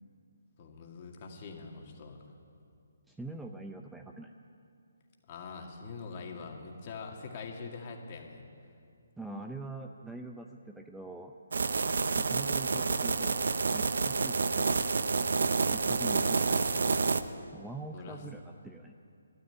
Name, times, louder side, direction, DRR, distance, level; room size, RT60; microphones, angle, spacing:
voice 1, 0.6-2.3 5.3-8.4 16.0-16.3 17.9-18.2, left 4 dB, 35° left, 1 dB, 2.1 m, -44 dB
voice 2, 3.1-4.3 9.2-11.3 12.2-13.5 13.7-14.8 15.7-17.0 17.5-19.0, right 2 dB, 5° right, 3 dB, 0.5 m, -44 dB
sound 1, 11.5-17.2, right 4 dB, 65° right, 0.7 m, -28 dB
13.0 x 12.0 x 9.1 m, 2.4 s
figure-of-eight pair, 145°, 0 cm